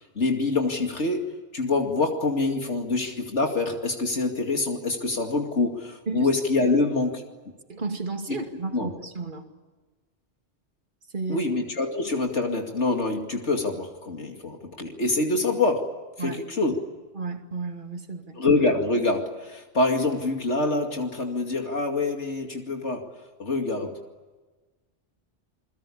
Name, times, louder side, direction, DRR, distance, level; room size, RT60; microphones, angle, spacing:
voice 1, 0.2-7.2 8.3-8.4 8.7-8.9 11.3-16.8 18.4-23.1 23.4-24.0, left 3 dB, 80° left, 3 dB, 2.7 m, -25 dB
voice 2, 7.7-9.4 11.1-11.5 16.2-16.4 17.1-18.4, right 3 dB, 45° right, 4 dB, 2.6 m, -33 dB
29.5 x 21.0 x 8.6 m, 1.3 s
omnidirectional pair, 1.2 m